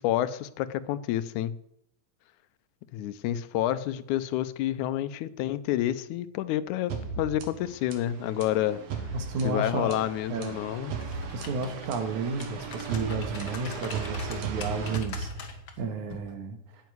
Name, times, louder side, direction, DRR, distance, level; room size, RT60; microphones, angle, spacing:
voice 1, 0.0-1.6 2.9-8.8 9.4-10.9, left 12 dB, 85° left, 14 dB, 2.1 m, -29 dB
sound 1, 6.9-15.8, right 4 dB, 65° right, 2.5 m, -36 dB
voice 2, 9.1-10.0 10.3-10.6 11.3-16.6, right 4 dB, 80° right, 6 dB, 3.0 m, -33 dB
sound 2, 10.9-11.9 12.3-15.7 16.1-16.3, left 6 dB, 50° left, 1.8 m, -43 dB
9.2 x 8.3 x 9.5 m, 0.77 s
omnidirectional pair, 3.4 m